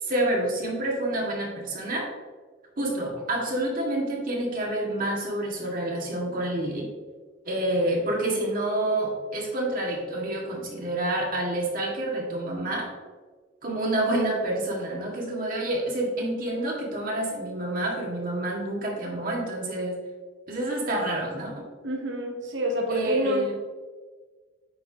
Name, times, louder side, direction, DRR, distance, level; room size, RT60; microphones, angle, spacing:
voice 1, 0.0-2.1 2.8-6.9 7.5-12.9 13.6-20.0 20.5-21.7 22.9-23.5, right 1 dB, 50° right, -2 dB, 1.8 m, -28 dB
voice 2, 21.8-23.6, equal, 75° right, 2 dB, 0.9 m, -27 dB
8.9 x 5.7 x 2.8 m, 1.4 s
head